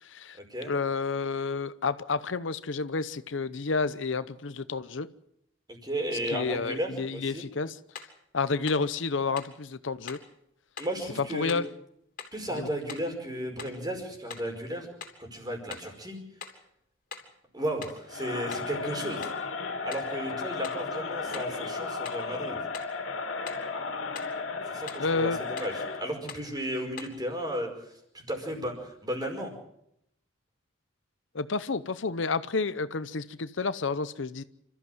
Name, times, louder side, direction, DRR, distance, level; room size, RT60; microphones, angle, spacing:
voice 1, 0.0-0.4 0.7-5.1 6.3-7.8 8.3-10.2 11.3-11.6 12.6-12.7 25.0-25.4 31.3-34.4, left 4 dB, 70° left, 0.8 m, -30 dB
voice 2, 5.8-7.4 10.8-11.6 12.3-14.9 15.2-16.2 17.5-19.3 19.8-22.6 24.7-25.7 26.0-27.7 28.1-28.7 29.0-29.5, right 1 dB, 20° right, 5.2 m, -34 dB
sound 1, 8.0-8.2 8.7-8.9 9.4-9.6 10.1-10.3 10.8-11.0 11.5-11.7 12.2-12.4 12.9-13.1 13.6-13.8 14.3-14.5 15.0-15.2 15.7-15.9 16.4-16.7 17.1-17.3 17.8-18.1 18.5-18.7 19.2-19.5 19.9-20.1 20.6-20.9 21.3-21.6 22.1-22.3 22.7-23.0 23.5-23.7 24.2-24.4 24.9-25.1 25.6-25.8 26.3-26.5 27.0-27.2, left 6 dB, 45° left, 3.3 m, -43 dB
Crowd, 18.1-26.1, left 4 dB, 85° left, 2.7 m, -34 dB
28.0 x 14.0 x 7.7 m
head